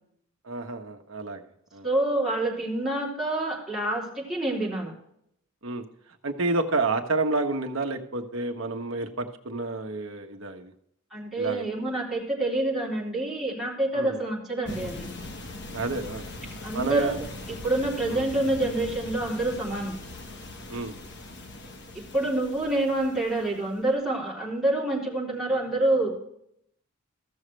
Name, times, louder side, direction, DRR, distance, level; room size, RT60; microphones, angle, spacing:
voice 1, 0.4-1.4 1.7-1.9 5.6-5.8 6.2-10.7 11.4-11.6 13.9-14.2 15.7-16.2 16.7-17.1 18.1-18.2 20.7-21.0, right 3 dB, 65° right, 5 dB, 1.1 m, -29 dB
voice 2, 1.8-4.9 11.1-15.1 16.6-20.0 22.1-26.1, right 1 dB, ahead, -7 dB, 3.5 m, -27 dB
sound 1, 14.7-23.7, left 2 dB, 55° left, 1.3 m, -41 dB
15.0 x 6.4 x 3.2 m, 0.72 s
head